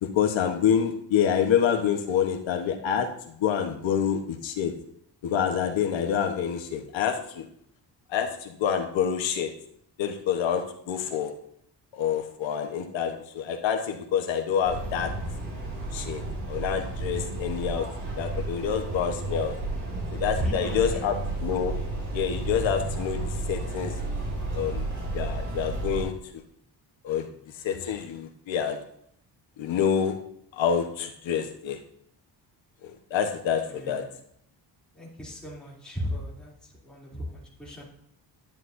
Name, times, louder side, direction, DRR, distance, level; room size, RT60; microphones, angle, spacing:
voice 1, 0.0-4.7 5.2-7.4 8.1-9.5 10.0-11.3 11.9-15.1 15.9-19.5 20.1-21.7 22.1-23.9 24.5-24.9 25.1-26.1 27.0-27.3 27.6-28.8 29.6-30.2 30.5-31.8 32.8-34.0, left 8 dB, 90° left, 4 dB, 1.1 m, -27 dB
sound 1, 14.6-26.0, right 2 dB, 45° right, 3.3 m, -32 dB
voice 2, 20.4-21.1 33.7-34.1 34.9-37.8, equal, ahead, -6 dB, 2.8 m, -35 dB
10.5 x 9.5 x 2.6 m, 0.69 s
wide cardioid pair, 170°, 44 cm